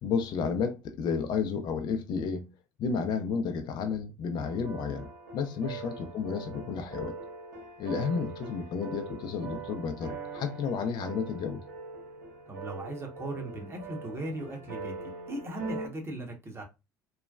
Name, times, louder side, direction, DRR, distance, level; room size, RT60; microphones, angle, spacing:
voice 1, 0.0-2.5 2.8-7.2 7.8-11.6, left 6 dB, 50° left, 0.5 m, -32 dB
sound 1, 4.4-15.9, right 4 dB, 90° right, 0.9 m, -42 dB
voice 2, 12.5-16.6, right 1 dB, 25° right, 1.1 m, -38 dB
3.1 x 2.1 x 2.4 m
hypercardioid pair, 75°, 9 cm